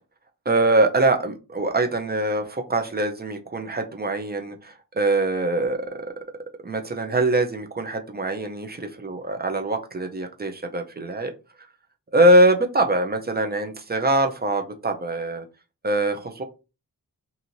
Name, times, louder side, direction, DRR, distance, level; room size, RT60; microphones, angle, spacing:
voice 1, 0.5-6.0 6.6-11.3 12.1-15.4 15.8-16.4, right 1 dB, 25° right, 5 dB, 0.5 m, -23 dB
2.9 x 2.7 x 2.6 m, 0.30 s
cardioid pair, 75°, 36 cm